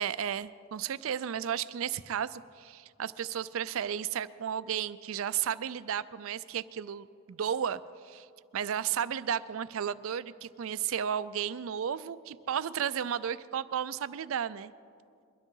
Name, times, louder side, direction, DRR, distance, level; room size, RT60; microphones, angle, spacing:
voice 1, 0.0-8.3 8.5-14.7, right 8 dB, 65° right, 16 dB, 0.4 m, -33 dB
22.0 x 12.5 x 3.8 m, 2.3 s
head